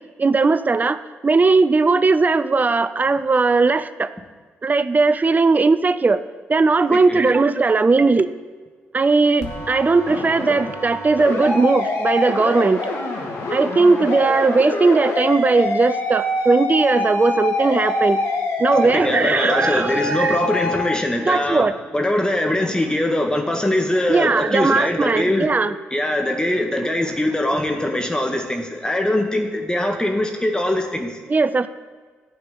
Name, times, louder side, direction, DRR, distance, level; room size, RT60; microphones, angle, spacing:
voice 1, 0.2-4.1 4.6-6.2 6.5-8.3 8.9-12.8 13.5-18.2 18.6-20.4 21.3-21.7 24.1-25.7 31.3-31.7, right 3 dB, 30° right, 13 dB, 0.6 m, -18 dB
voice 2, 6.9-7.3 18.8-25.5 25.9-31.2, left 1 dB, 15° left, 3 dB, 1.8 m, -22 dB
sound 1, 9.4-20.8, left 2 dB, 60° left, 2.7 m, -25 dB
11.5 x 5.8 x 8.9 m, 1.5 s
hypercardioid pair, 40°, 6 cm